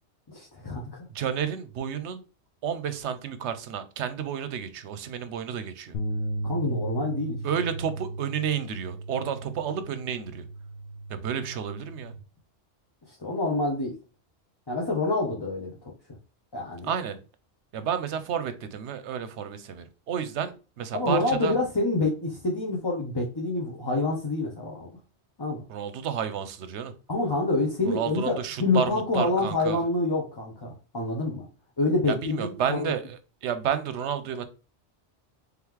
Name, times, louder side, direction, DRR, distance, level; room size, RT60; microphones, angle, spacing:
voice 1, 0.3-1.0 6.4-7.4 13.1-13.9 14.7-15.9 16.5-16.9 20.9-24.9 25.4-25.6 27.1-28.3 28.6-31.5 31.8-32.8, left 2 dB, 25° left, -3 dB, 0.7 m, -27 dB
voice 2, 1.1-2.2 2.6-6.0 7.4-10.4 11.1-12.2 16.8-17.2 17.7-21.5 25.7-26.9 27.9-29.8 32.1-34.4, right 8 dB, 75° right, 11 dB, 0.9 m, -31 dB
sound 1, 5.9-12.2, right 2 dB, 85° left, 1.1 m, -35 dB
3.5 x 3.1 x 3.6 m, 0.33 s
omnidirectional pair, 1.2 m